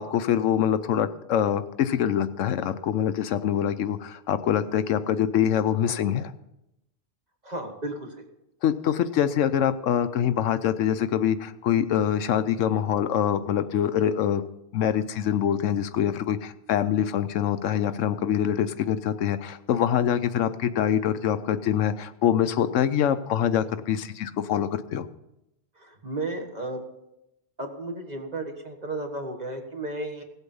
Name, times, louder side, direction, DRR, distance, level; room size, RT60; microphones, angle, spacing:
voice 1, 0.0-6.3 8.6-14.4 14.7-25.1, left 9 dB, 75° left, 12 dB, 0.9 m, -24 dB
voice 2, 7.4-8.3 25.8-26.8 27.6-30.2, right 2 dB, 35° right, 3 dB, 1.6 m, -34 dB
17.0 x 8.1 x 5.4 m, 0.87 s
omnidirectional pair, 1.3 m